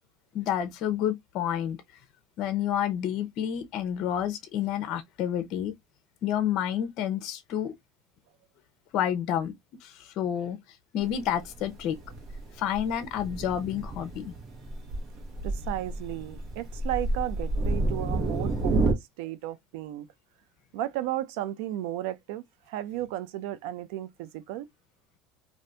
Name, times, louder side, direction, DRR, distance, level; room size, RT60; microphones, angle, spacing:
voice 1, 0.3-1.8 2.4-5.7 6.2-7.7 8.9-9.5 9.8-10.6 10.9-12.0 12.6-14.3, left 10 dB, 55° left, 0.6 m, -29 dB
Thunder, 11.0-18.9, right 2 dB, 40° right, 1.1 m, -30 dB
voice 2, 15.4-20.1 20.7-24.7, right 13 dB, 80° right, 0.4 m, -34 dB
2.6 x 2.5 x 3.2 m
cardioid pair, 135°, 0 cm